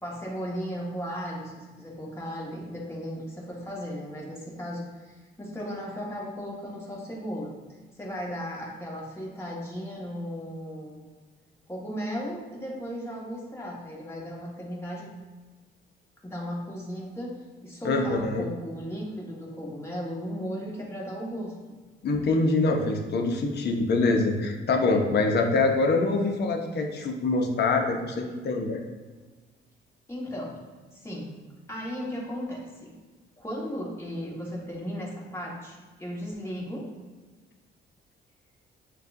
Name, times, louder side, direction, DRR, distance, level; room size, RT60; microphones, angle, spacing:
voice 1, 0.0-11.1 11.7-15.1 16.2-17.3 17.6-21.7 30.1-30.6 30.9-31.3 31.7-32.9 33.4-36.9, equal, 15° left, -4 dB, 1.4 m, -36 dB
voice 2, 17.8-18.4 22.0-28.8, left 3 dB, 55° left, 3 dB, 0.8 m, -24 dB
6.9 x 2.4 x 2.6 m, 1.4 s
cardioid pair, 90°, 20 cm